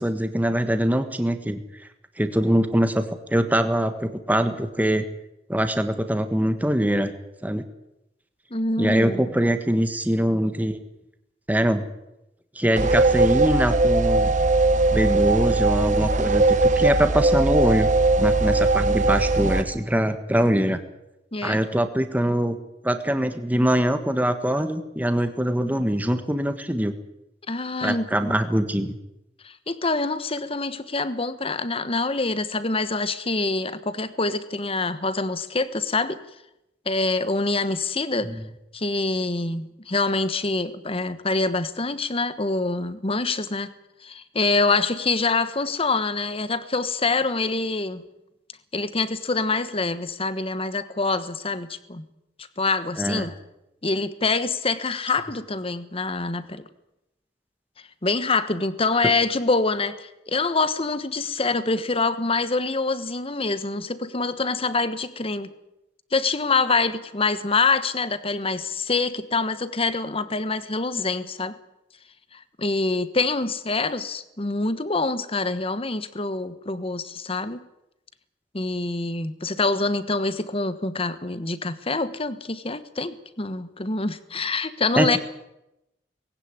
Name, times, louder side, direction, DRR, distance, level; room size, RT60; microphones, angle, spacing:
voice 1, 0.0-1.6 2.2-5.0 5.5-7.1 7.4-7.6 8.8-10.8 11.5-11.8 12.5-14.3 14.9-17.9 18.2-20.8 21.4-22.6 22.8-26.9 27.8-29.0 38.2-38.4 53.0-53.3 84.9-85.2, equal, 10° right, 8 dB, 1.5 m, -23 dB
voice 2, 8.5-9.3 21.3-21.6 27.5-28.4 29.4-36.2 36.8-38.3 38.7-43.7 44.0-48.0 48.7-52.0 52.4-53.3 53.8-56.7 58.0-65.5 66.1-71.6 72.3-77.6 78.5-85.2, left 3 dB, 30° left, 14 dB, 1.3 m, -25 dB
sound 1, 12.8-19.6, right 2 dB, 45° right, 1.2 m, -20 dB
19.5 x 16.5 x 9.7 m, 0.89 s
head